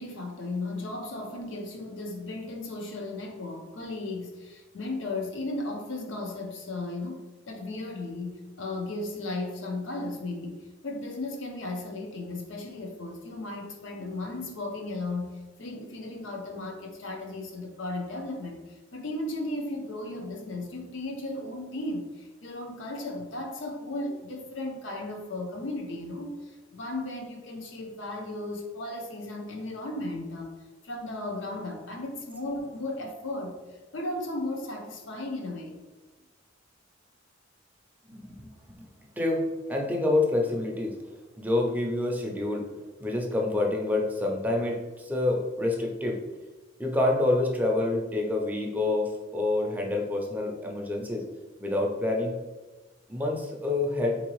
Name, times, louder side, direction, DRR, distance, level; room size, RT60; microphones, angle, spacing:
voice 1, 0.0-10.6 10.8-30.5 30.8-33.6 33.9-35.8, left 2 dB, 70° left, 2 dB, 0.7 m, -35 dB
voice 2, 38.1-38.5 39.2-41.0 41.4-42.7 43.0-46.2 46.8-51.3 51.6-52.3 53.1-54.2, left 2 dB, 10° right, 0 dB, 0.4 m, -27 dB
3.8 x 2.7 x 3.0 m, 1.2 s
head